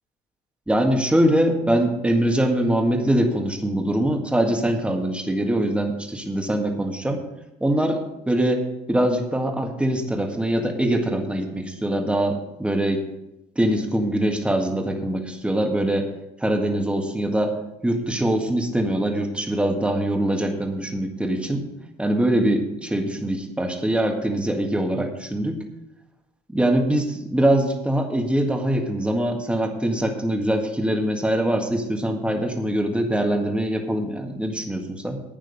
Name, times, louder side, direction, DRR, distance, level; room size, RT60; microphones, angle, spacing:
voice 1, 0.7-7.2 7.6-13.0 13.6-16.1 16.4-17.6 17.8-21.6 22.0-25.6 26.5-35.2, right 1 dB, 5° right, 3 dB, 1.7 m, -23 dB
11.5 x 9.1 x 5.1 m, 0.89 s
cardioid pair, 110°, 17 cm